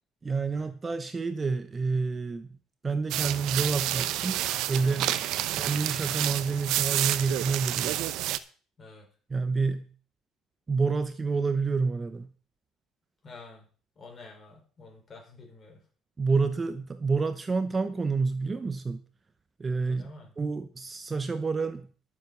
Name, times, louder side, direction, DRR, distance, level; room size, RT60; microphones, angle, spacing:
voice 1, 0.2-2.6 2.8-4.4 4.7-5.2 5.5-8.0 9.3-9.9 10.7-12.3 16.2-19.0 19.6-21.9, right 4 dB, 20° right, 0.8 m, -28 dB
sound 1, 3.1-8.4, right 14 dB, 75° right, 0.8 m, -29 dB
voice 2, 8.8-9.1 13.2-13.7 14.0-15.8 19.8-20.3, left 3 dB, 30° left, 5.4 m, -49 dB
12.0 x 7.3 x 6.6 m
cardioid pair, 130°, 0 cm